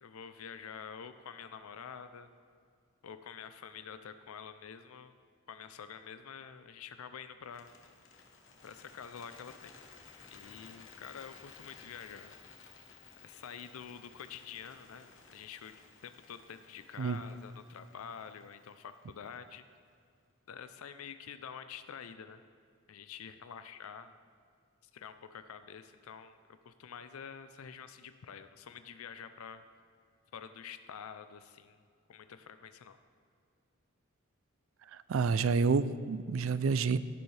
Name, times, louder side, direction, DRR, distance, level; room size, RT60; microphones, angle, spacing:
voice 1, 0.0-2.3 3.0-5.1 5.5-7.7 8.6-9.8 10.3-12.4 13.2-19.6 20.5-22.4 22.9-24.1 24.9-26.4 26.6-29.6 30.3-31.8 32.1-33.0, left 7 dB, 90° left, 11 dB, 0.5 m, -47 dB
Bird, 7.4-19.6, left 5 dB, 60° left, 1.1 m, -57 dB
voice 2, 34.9-37.0, right 5 dB, 70° right, 15 dB, 0.4 m, -29 dB
16.5 x 6.9 x 3.3 m, 2.3 s
head